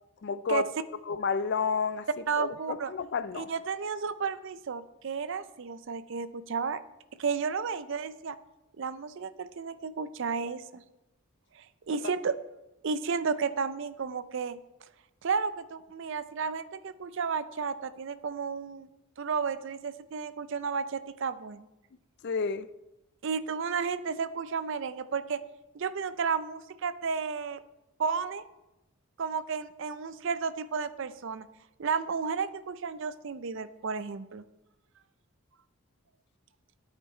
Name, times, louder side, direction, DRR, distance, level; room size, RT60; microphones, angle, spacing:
voice 1, 0.2-0.7 1.1-2.1 2.4-3.5 22.2-22.7, left 5 dB, 50° left, 0.4 m, -30 dB
voice 2, 2.3-2.9 3.3-6.8 7.2-8.4 8.8-10.8 11.6-12.4 12.8-14.6 15.2-18.9 19.2-21.7 23.2-25.4 25.7-27.6 28.0-28.4 29.2-31.5 31.8-34.4, right 5 dB, 55° right, 0.5 m, -32 dB
11.0 x 9.0 x 4.3 m
head